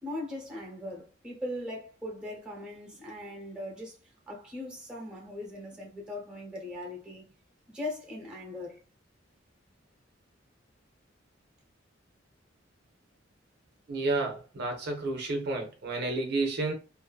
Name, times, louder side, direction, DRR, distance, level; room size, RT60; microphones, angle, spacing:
voice 1, 0.0-4.0 4.3-7.2 7.7-8.8, left 1 dB, 5° right, 1.0 m, -39 dB
voice 2, 13.9-16.7, right 2 dB, 60° right, 0.6 m, -31 dB
2.6 x 2.6 x 2.3 m
head